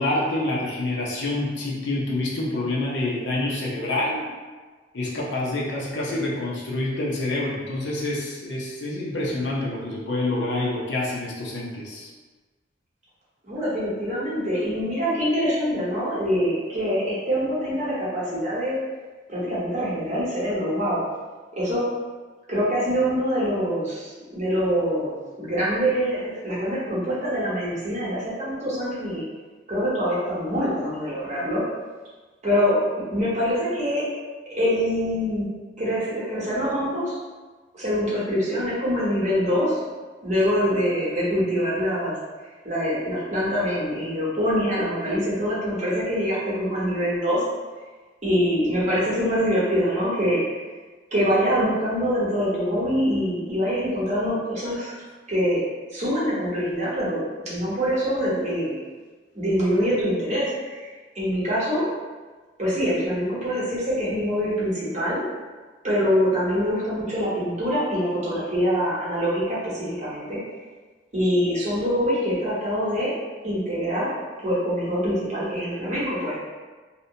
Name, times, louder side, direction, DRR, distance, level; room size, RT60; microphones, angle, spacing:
voice 1, 0.0-4.3 4.9-12.1, left 2 dB, 65° left, -3 dB, 0.6 m, -27 dB
voice 2, 13.4-18.8 19.3-21.0 21.5-21.9 22.5-29.2 29.7-31.6 32.4-32.8 33.1-34.1 34.5-35.5 35.8-37.2 37.7-39.8 40.2-42.1 42.6-47.4 48.2-50.4 51.1-54.9 55.3-55.6 55.9-58.8 59.3-60.9 61.1-61.9 62.6-65.2 65.8-70.4 71.1-73.1 73.4-74.1 74.4-76.4, equal, 40° right, -8 dB, 0.9 m, -24 dB
2.8 x 2.1 x 2.7 m, 1.3 s
head